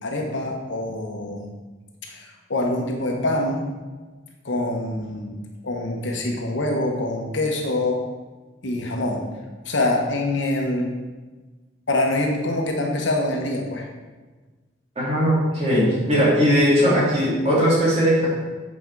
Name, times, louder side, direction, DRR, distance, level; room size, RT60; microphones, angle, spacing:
voice 1, 0.0-1.5 2.0-3.7 4.4-8.0 8.6-9.3 9.6-10.9 11.9-13.9, left 1 dB, 65° left, 1 dB, 1.2 m, -25 dB
voice 2, 15.0-18.3, equal, 30° right, -7 dB, 2.8 m, -19 dB
8.3 x 5.3 x 4.8 m, 1.3 s
head